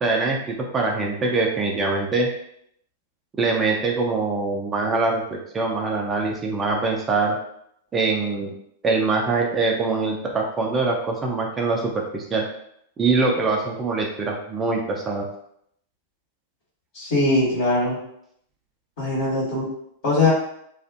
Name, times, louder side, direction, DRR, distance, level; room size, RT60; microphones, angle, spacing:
voice 1, 0.0-2.3 3.4-7.4 7.9-8.5 8.8-12.4 13.0-15.3, right 3 dB, 20° right, 0 dB, 0.4 m, -23 dB
voice 2, 16.9-18.0 19.0-19.7 20.0-20.3, left 2 dB, 55° left, -8 dB, 1.2 m, -21 dB
2.4 x 2.4 x 2.4 m, 0.72 s
figure-of-eight pair, 95°, 0 cm